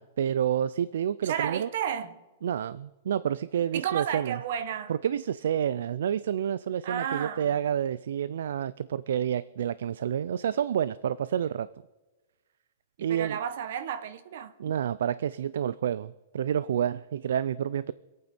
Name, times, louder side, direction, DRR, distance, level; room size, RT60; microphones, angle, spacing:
voice 1, 0.0-1.7 2.4-4.4 4.9-11.7 13.0-13.4 14.6-17.9, right 9 dB, 65° right, 0.4 m, -29 dB
voice 2, 1.2-2.2 3.7-4.9 6.8-7.6 13.0-14.5, right 9 dB, 50° right, 0.9 m, -32 dB
26.0 x 8.7 x 4.2 m
supercardioid pair, 180°, 0 cm